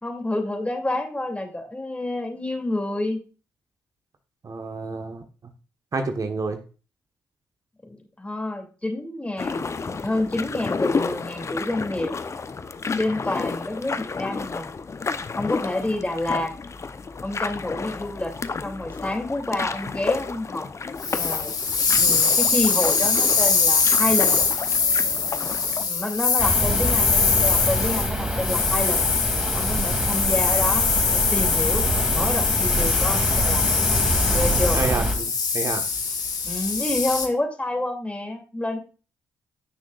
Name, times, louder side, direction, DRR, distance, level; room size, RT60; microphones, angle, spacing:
voice 1, 0.0-3.2 7.8-12.1 13.0-14.7 15.4-16.5 17.2-18.3 18.6-20.7 21.1-21.5 21.9-24.4 25.8-29.1 29.5-30.9 31.3-31.9 32.1-33.6 34.3-34.8 36.4-38.8, left 1 dB, 15° left, 3 dB, 2.8 m, -28 dB
voice 2, 4.4-5.2 5.9-6.6 34.7-35.3 35.5-35.8, right 3 dB, 45° right, 6 dB, 1.3 m, -28 dB
sound 1, 9.4-25.8, left 4 dB, 35° left, 0.8 m, -31 dB
sound 2, 21.0-37.3, left 5 dB, 50° left, 1.7 m, -22 dB
sound 3, 26.4-35.1, right 1 dB, 10° right, 2.7 m, -26 dB
15.5 x 6.2 x 2.5 m, 0.34 s
hypercardioid pair, 45°, 8 cm